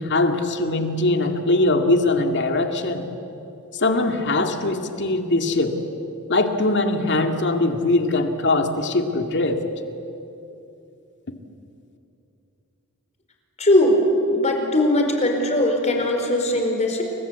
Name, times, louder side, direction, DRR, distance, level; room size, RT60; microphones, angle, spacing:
voice 1, 0.0-3.1 3.7-5.8 6.3-9.6, left 2 dB, 55° left, 5 dB, 2.3 m, -21 dB
voice 2, 13.6-14.0 14.3-17.0, left 1 dB, 30° left, 3 dB, 4.5 m, -20 dB
29.5 x 23.5 x 8.2 m, 2.8 s
head